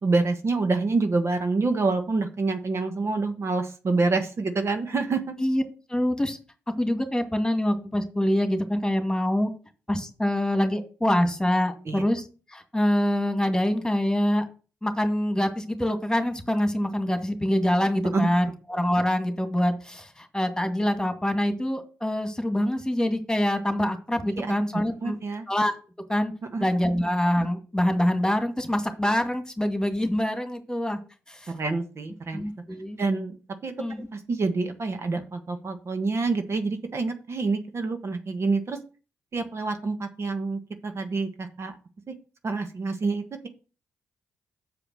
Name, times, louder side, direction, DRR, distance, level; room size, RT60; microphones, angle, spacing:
voice 1, 0.0-5.3 11.9-12.0 18.1-18.6 24.4-24.5 25.0-25.5 26.5-26.6 31.5-32.4 33.0-33.3 33.6-33.7 34.1-38.8 39.3-41.8 42.1-42.2 42.4-43.5, right 3 dB, 50° right, 6 dB, 1.3 m, -27 dB
voice 2, 5.9-6.4 6.8-9.5 9.9-12.2 12.5-14.5 14.8-25.2 25.5-25.7 26.1-26.3 26.6-31.0 31.3-31.5 32.3-33.0 33.8-34.1, left 1 dB, 10° left, 7 dB, 2.1 m, -25 dB
7.1 x 4.9 x 6.2 m, 0.35 s
supercardioid pair, 45°, 6 cm